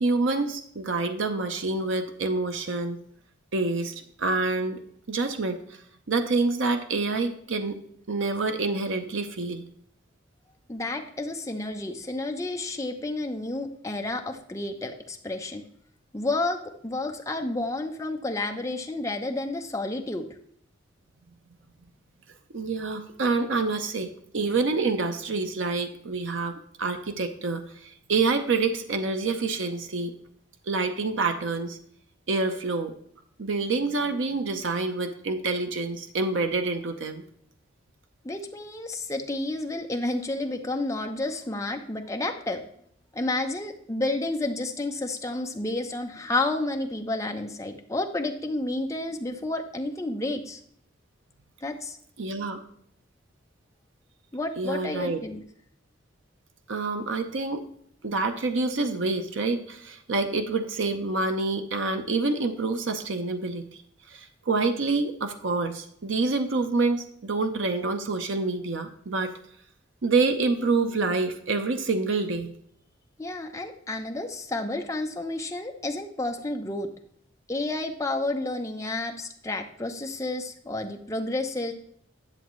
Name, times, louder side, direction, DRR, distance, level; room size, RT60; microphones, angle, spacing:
voice 1, 0.0-3.0 3.5-4.8 5.1-5.8 6.1-7.8 8.1-9.7 22.5-30.1 30.7-31.8 32.3-32.9 33.4-37.2 52.2-52.6 54.6-55.2 56.7-57.6 58.0-63.8 64.1-69.3 70.0-72.5, right 3 dB, 75° right, 6 dB, 0.7 m, -27 dB
voice 2, 10.7-15.6 16.1-20.3 38.2-42.6 43.1-50.6 51.6-52.0 54.3-55.4 73.2-76.9 77.5-81.7, left 2 dB, 15° left, 3 dB, 0.7 m, -30 dB
10.5 x 7.0 x 3.1 m, 0.66 s
head